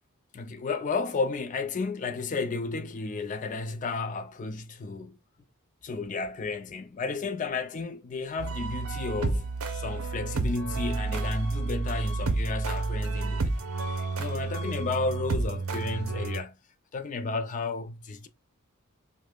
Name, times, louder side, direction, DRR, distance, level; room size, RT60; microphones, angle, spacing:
voice 1, 0.3-5.2 5.8-13.5 13.9-16.5 16.9-18.3, left 4 dB, 35° left, 0.4 m, -33 dB
sound 1, 8.4-16.4, right 3 dB, 80° right, 0.7 m, -30 dB
4.8 x 2.1 x 2.2 m
head